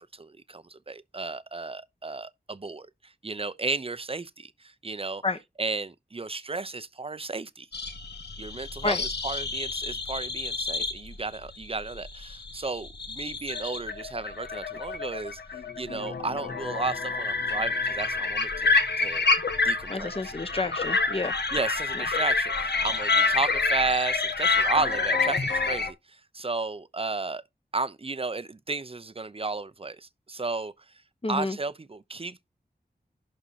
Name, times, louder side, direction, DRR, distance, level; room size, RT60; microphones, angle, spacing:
voice 1, 0.0-5.2 5.6-7.7 8.4-19.3 19.6-20.3 21.5-27.4 27.7-31.0 31.3-32.5, right 3 dB, 35° right, 0.8 m, -33 dB
sound 1, 7.7-25.9, left 3 dB, 90° left, 1.4 m, -28 dB
voice 2, 19.9-21.3 31.2-31.6, left 3 dB, 35° left, 1.1 m, -29 dB
11.5 x 4.5 x 4.1 m
wide cardioid pair, 85°, 17 cm